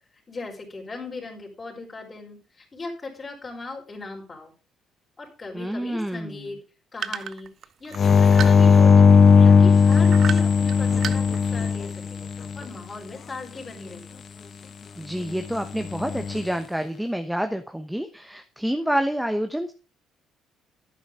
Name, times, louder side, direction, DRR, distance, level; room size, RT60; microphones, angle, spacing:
voice 1, 0.3-4.5 5.2-6.6 6.9-7.5 7.8-9.1 9.4-14.1, left 3 dB, 30° left, -3 dB, 5.1 m, -38 dB
voice 2, 5.5-6.4 15.0-19.7, equal, 5° right, 7 dB, 1.1 m, -28 dB
sound 1, 7.0-9.0 9.9-10.7 11.0-11.7, right 9 dB, 55° right, 0.7 m, -32 dB
sound 2, 7.9-12.6 15.8-16.4, left 6 dB, 50° left, 1.1 m, -16 dB
11.0 x 9.3 x 3.8 m, 0.35 s
hypercardioid pair, 50°, 0 cm